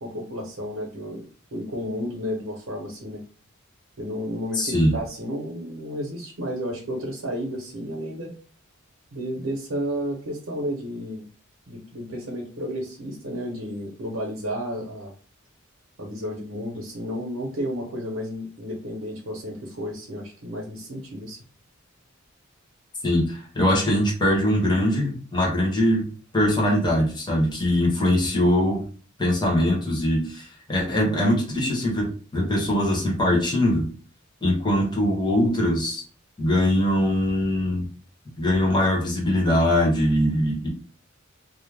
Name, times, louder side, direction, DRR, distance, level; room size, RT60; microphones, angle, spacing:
voice 1, 0.0-3.2 4.0-8.3 9.1-11.3 11.7-15.1 16.0-21.4, equal, 85° right, -2 dB, 0.8 m, -32 dB
voice 2, 4.5-4.9 23.0-26.1 26.3-28.8 29.2-33.9 34.4-36.0 36.4-37.9 38.4-40.7, left 1 dB, 20° left, -2 dB, 0.9 m, -22 dB
2.4 x 2.1 x 3.2 m, 0.39 s
head